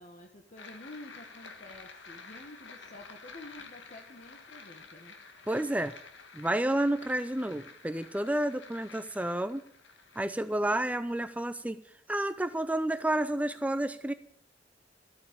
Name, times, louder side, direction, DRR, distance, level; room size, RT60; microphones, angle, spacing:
voice 1, 0.0-5.1, left 1 dB, 45° left, 3 dB, 1.5 m, -50 dB
sound 1, 0.6-11.5, left 4 dB, 80° left, 1.8 m, -51 dB
voice 2, 5.5-5.9 6.3-9.6 10.2-11.8 12.1-14.1, right 1 dB, 10° right, 11 dB, 0.5 m, -30 dB
13.0 x 8.9 x 9.6 m, 0.63 s
head